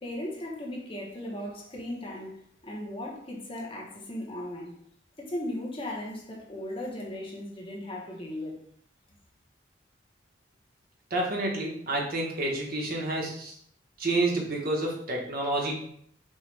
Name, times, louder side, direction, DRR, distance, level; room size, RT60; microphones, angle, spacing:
voice 1, 0.0-4.8 5.2-8.6, left 1 dB, 30° left, -2 dB, 1.0 m, -37 dB
voice 2, 11.1-13.5 14.0-15.8, right 2 dB, 55° right, -2 dB, 1.2 m, -29 dB
5.5 x 2.4 x 3.2 m, 0.65 s
head